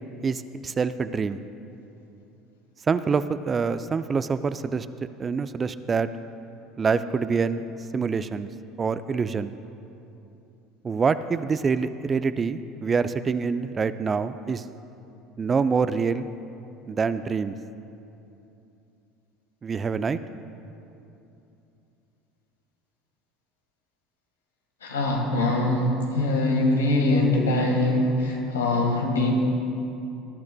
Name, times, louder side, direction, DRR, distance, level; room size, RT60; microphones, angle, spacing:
voice 1, 0.2-1.4 2.9-4.9 5.2-6.1 6.8-7.6 7.9-8.5 8.8-9.5 10.8-14.6 15.4-16.3 16.9-17.6 19.6-20.2, right 5 dB, 30° right, 12 dB, 0.4 m, -25 dB
voice 2, 24.8-29.5, left 2 dB, 85° left, 0 dB, 1.7 m, -23 dB
19.5 x 12.0 x 2.3 m, 2.8 s
hypercardioid pair, 70°, 0 cm